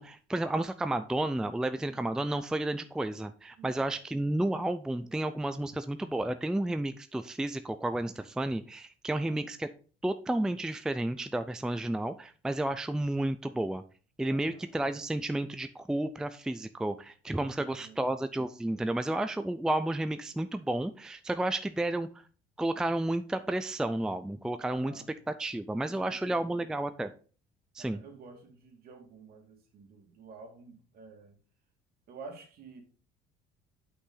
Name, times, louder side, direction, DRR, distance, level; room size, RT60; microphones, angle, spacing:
voice 1, 0.0-9.7 10.0-13.8 14.2-22.1 22.6-24.9 25.4-27.1 27.8-28.0, right 1 dB, 5° right, 11 dB, 0.4 m, -31 dB
voice 2, 3.6-4.0 9.1-9.5 14.3-14.8 17.4-18.0 24.6-25.2 25.7-26.7 27.8-31.4 32.1-32.8, right 4 dB, 55° right, 3 dB, 2.4 m, -50 dB
8.3 x 5.8 x 3.9 m, 0.39 s
cardioid pair, 105°, 18 cm